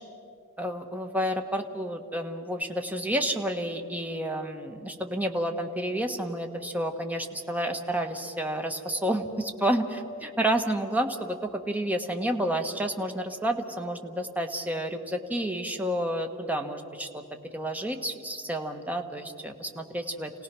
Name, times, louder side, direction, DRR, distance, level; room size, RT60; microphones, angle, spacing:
voice 1, 0.6-17.2 17.5-20.3, right 1 dB, 5° right, 4 dB, 1.2 m, -30 dB
28.0 x 17.5 x 6.1 m, 2.5 s
head